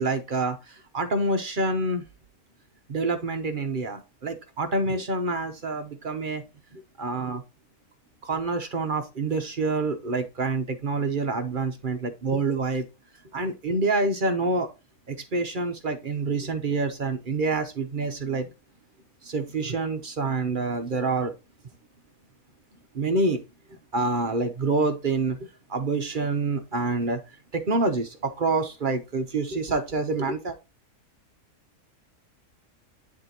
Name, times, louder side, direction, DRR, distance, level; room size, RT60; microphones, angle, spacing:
voice 1, 0.0-2.0 2.9-6.4 6.7-7.4 8.2-12.8 13.3-14.7 15.1-18.5 19.2-21.3 22.9-23.4 23.9-27.2 27.5-30.5, right 3 dB, 40° right, 7 dB, 0.8 m, -27 dB
10.5 x 3.7 x 2.9 m, 0.27 s
omnidirectional pair, 1.6 m